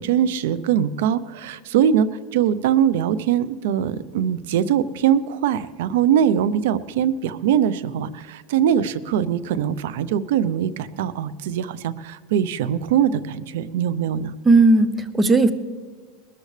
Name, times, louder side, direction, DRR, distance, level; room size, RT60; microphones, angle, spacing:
voice 1, 0.0-14.3, right 9 dB, 80° right, 17 dB, 0.6 m, -22 dB
voice 2, 14.4-15.5, right 3 dB, 15° right, 12 dB, 0.7 m, -15 dB
21.0 x 13.0 x 3.3 m, 1.5 s
supercardioid pair, 140°, 0 cm